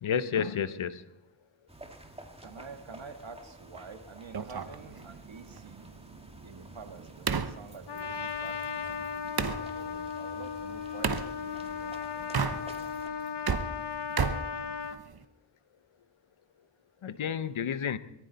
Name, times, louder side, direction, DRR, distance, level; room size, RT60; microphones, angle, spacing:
voice 1, 0.0-1.0 17.0-18.0, left 7 dB, 80° left, 14 dB, 0.9 m, -30 dB
sound 1, 1.7-13.1, right 1 dB, 10° right, 2.2 m, -51 dB
voice 2, 2.4-5.9 6.4-9.1 9.7-12.9, right 5 dB, 70° right, 7 dB, 1.9 m, -48 dB
sound 2, 4.3-9.6 11.0-11.3 12.2-13.0 13.3-15.2, right 6 dB, 50° right, 1.0 m, -34 dB
Trumpet, 7.9-15.0, left 7 dB, 55° left, 1.2 m, -36 dB
22.0 x 14.0 x 4.1 m, 0.90 s
cardioid pair, 55°, 48 cm